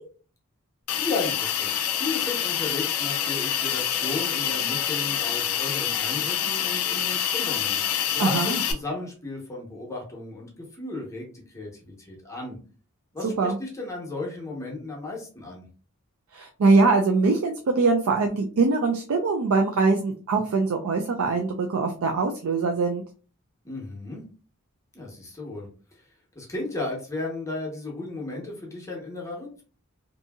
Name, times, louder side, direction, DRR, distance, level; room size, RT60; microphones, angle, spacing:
Hiss, 0.9-8.7, left 9 dB, 90° left, 0.5 m, -26 dB
voice 1, 1.0-7.8 8.1-12.6 13.1-15.7 23.6-24.2 24.9-29.6, left 3 dB, 15° left, -2 dB, 0.8 m, -35 dB
voice 2, 8.2-8.6 13.2-13.6 16.3-23.0, right 3 dB, 70° right, 3 dB, 0.4 m, -22 dB
2.7 x 2.6 x 2.3 m, 0.38 s
head